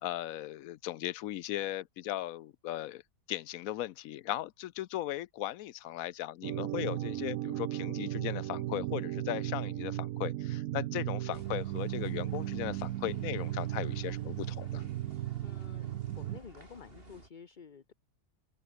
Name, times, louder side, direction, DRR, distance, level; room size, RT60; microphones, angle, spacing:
voice 1, 0.0-3.0 3.3-14.8, left 14 dB, 75° left, 1.0 m, -37 dB
sound 1, 6.4-16.4, right 15 dB, 75° right, 1.0 m, -36 dB
sound 2, 11.3-17.3, right 1 dB, 40° right, 6.7 m, -53 dB
voice 2, 15.3-15.9 16.2-17.9, left 6 dB, 35° left, 1.1 m, -51 dB
open air
omnidirectional pair, 1.5 m